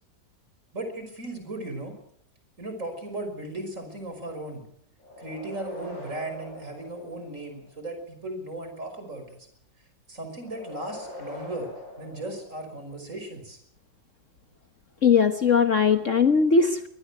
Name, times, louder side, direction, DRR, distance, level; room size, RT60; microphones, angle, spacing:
voice 1, 0.7-1.9 2.6-4.6 5.2-9.4 10.1-11.7 12.0-13.6, right 2 dB, 40° right, 6 dB, 6.1 m, -36 dB
sound 1, 5.0-7.8 10.4-13.1, left 2 dB, 80° left, 8.5 m, -43 dB
voice 2, 15.0-16.9, left 5 dB, 45° left, 8 dB, 1.4 m, -20 dB
24.5 x 19.0 x 6.1 m, 0.68 s
omnidirectional pair, 2.0 m